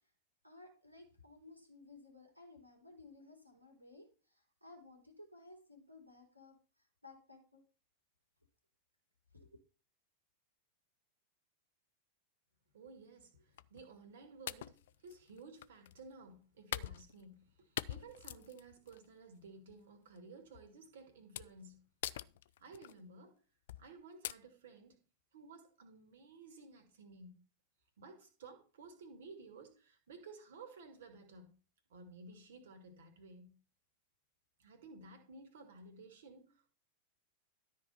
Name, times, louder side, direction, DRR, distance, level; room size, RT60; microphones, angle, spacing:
voice 1, 0.4-6.6 7.0-7.6 9.3-9.5, left 2 dB, 90° right, 3.5 m, -57 dB
voice 2, 12.7-21.8 22.6-23.4 23.8-25.0 25.3-27.3 28.0-31.6 31.9-33.6 34.6-36.7, right 3 dB, 60° right, 2.6 m, -55 dB
sound 1, 13.6-13.8 14.5-16.0 16.7-17.5 17.8-19.0 19.5-19.7 20.5-20.7 21.4-21.7 22.0-22.9 23.7-23.9 24.2-24.3, left 13 dB, 55° left, 0.4 m, -43 dB
13.0 x 4.8 x 5.6 m
figure-of-eight pair, 90°, 0 cm